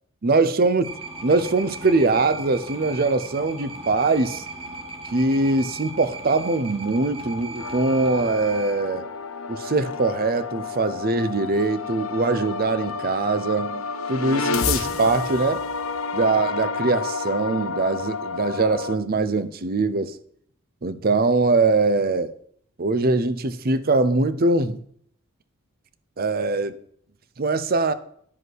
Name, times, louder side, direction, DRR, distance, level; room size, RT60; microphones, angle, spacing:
voice 1, 0.2-0.9 1.2-4.4 5.1-9.0 9.5-13.8 14.1-15.6 16.1-20.2 20.8-22.3 22.8-24.8 26.2-26.8 27.4-27.9, right 3 dB, 45° right, 0.6 m, -22 dB
sound 1, 0.8-8.7, right 2 dB, 25° right, 1.5 m, -37 dB
sound 2, 7.6-19.0, left 5 dB, 65° left, 0.7 m, -30 dB
9.5 x 5.4 x 6.2 m
head